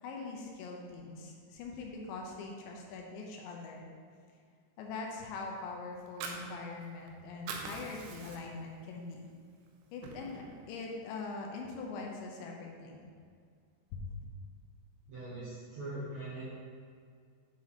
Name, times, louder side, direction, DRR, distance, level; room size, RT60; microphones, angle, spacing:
voice 1, 0.0-3.9 4.8-9.3 9.9-13.1 13.9-14.0, left 3 dB, 80° left, 0 dB, 2.9 m, -42 dB
Fire, 5.9-7.1 7.3-8.7 9.1-9.3 9.7-10.6, right 4 dB, 90° right, 3.0 m, -43 dB
voice 2, 15.1-16.5, right 2 dB, 65° right, -11 dB, 1.8 m, -41 dB
9.5 x 4.6 x 4.1 m, 2.1 s
omnidirectional pair, 5.3 m